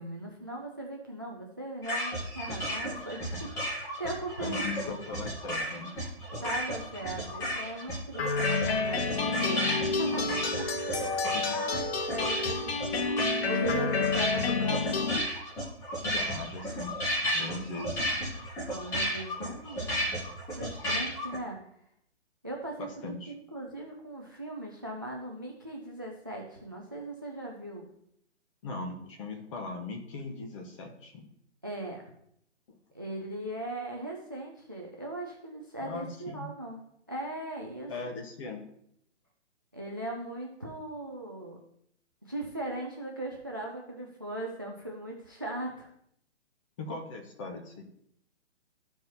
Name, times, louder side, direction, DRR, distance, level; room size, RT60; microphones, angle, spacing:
voice 1, 0.0-5.0 6.4-10.4 10.8-15.3 18.7-20.1 20.6-21.8 22.4-27.9 31.6-32.1 32.9-36.8 37.1-37.9 39.7-41.6 42.2-45.9, right 1 dB, 20° right, 1 dB, 0.3 m, -39 dB
sound 1, 1.8-21.4, equal, 10° left, 0.8 m, -34 dB
voice 2, 4.4-6.0 11.3-11.6 16.0-17.0 17.3-18.1 22.8-23.3 28.6-31.3 35.8-36.5 37.9-38.7 46.8-47.8, left 3 dB, 25° left, 3 dB, 1.1 m, -39 dB
sound 2, 8.2-15.2, left 4 dB, 60° left, 0.8 m, -29 dB
13.5 x 4.6 x 2.7 m, 0.72 s
hypercardioid pair, 150°, 36 cm